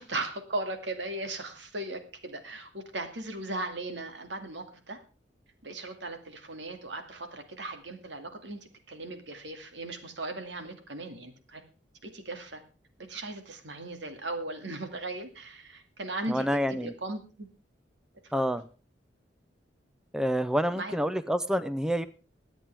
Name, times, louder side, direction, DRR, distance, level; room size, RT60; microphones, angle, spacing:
voice 1, 0.0-5.0 5.6-11.6 12.0-12.6 13.0-17.5 18.2-18.4 20.7-21.0, right 2 dB, 80° right, 6 dB, 2.2 m, -38 dB
voice 2, 16.3-16.9 18.3-18.6 20.1-22.1, equal, 5° right, 13 dB, 0.5 m, -28 dB
23.0 x 9.0 x 3.4 m, 0.35 s
head